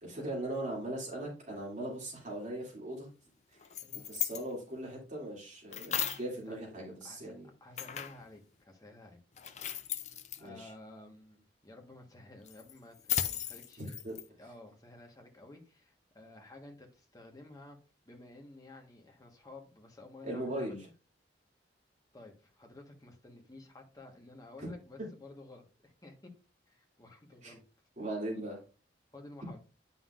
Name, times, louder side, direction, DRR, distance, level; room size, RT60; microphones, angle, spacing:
voice 1, 0.0-3.1 3.9-7.5 10.4-10.7 13.8-14.2 20.2-20.9 24.6-24.7 25.0-25.1 27.4-27.5 28.0-28.6, right 1 dB, 45° right, -3 dB, 2.7 m, -39 dB
sound 1, 3.6-4.4 5.7-6.3 7.8-8.3 9.4-10.4 12.5-14.3, left 10 dB, 40° left, 0.5 m, -36 dB
voice 2, 7.6-9.2 10.4-14.0 14.4-17.8 18.0-20.9 22.1-26.3 26.7-27.6 29.1-29.6, left 2 dB, 20° left, 2 dB, 1.4 m, -52 dB
9.5 x 5.7 x 2.5 m, 0.33 s
head